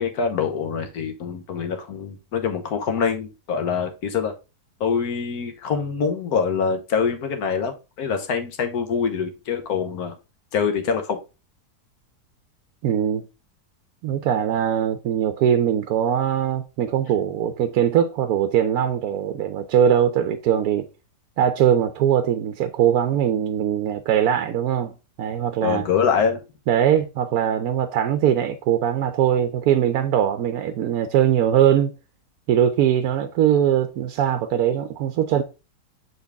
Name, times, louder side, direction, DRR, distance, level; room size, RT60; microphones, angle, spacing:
voice 1, 0.0-4.3 4.8-10.2 10.5-11.2 25.6-26.4, left 6 dB, 65° left, 1.5 m, -24 dB
voice 2, 12.8-13.3 14.0-20.9 21.4-24.9 25.2-25.9 26.7-31.9 32.5-35.4, right 9 dB, 70° right, 1.0 m, -21 dB
7.4 x 4.0 x 3.5 m
omnidirectional pair, 1.7 m